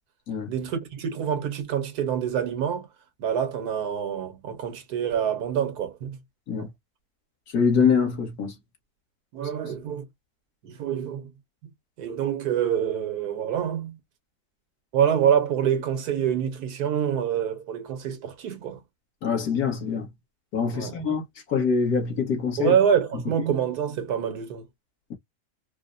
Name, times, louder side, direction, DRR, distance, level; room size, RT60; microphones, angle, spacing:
voice 1, 0.5-2.9 3.2-6.2 6.6-6.7 9.3-10.0 10.6-11.3 12.0-14.0 14.9-18.8 20.7-20.9 22.6-24.7, right 9 dB, 90° right, 1.5 m, -26 dB
voice 2, 7.5-8.6 9.6-9.7 19.2-20.1 20.5-21.2 21.5-22.7, left 6 dB, 75° left, 1.8 m, -24 dB
4.5 x 2.1 x 2.5 m
omnidirectional pair, 1.6 m